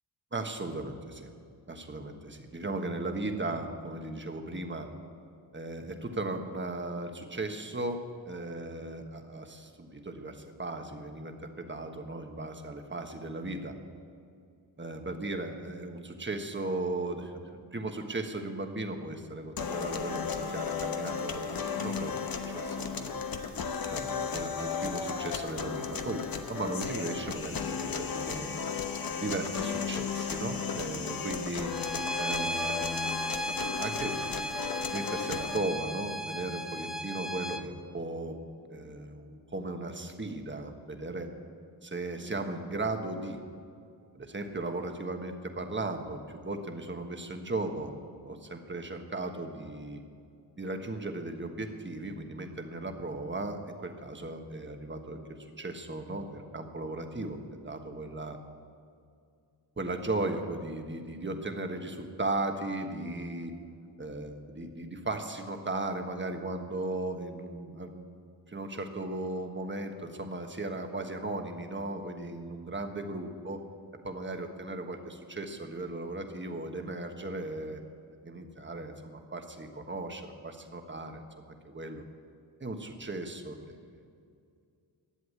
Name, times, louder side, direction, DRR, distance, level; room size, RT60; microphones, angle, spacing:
voice 1, 0.3-1.3 1.7-4.9 5.5-13.7 14.8-23.2 23.9-26.2 26.5-28.5 29.2-31.7 32.2-33.2 33.5-34.4 34.9-38.4 38.7-41.3 41.8-43.4 44.2-48.0 48.2-50.0 50.6-55.2 55.6-58.4 59.8-63.5 64.0-68.1 68.5-73.6 74.0-77.8 78.2-81.2 81.7-82.0 82.6-83.7, right 2 dB, 25° right, 5 dB, 1.4 m, -36 dB
sound 1, 19.6-35.6, left 6 dB, 50° left, 1.0 m, -35 dB
Bowed string instrument, 31.7-37.6, equal, ahead, 1.0 m, -35 dB
11.5 x 7.7 x 9.5 m, 2.3 s
cardioid pair, 70°, 45 cm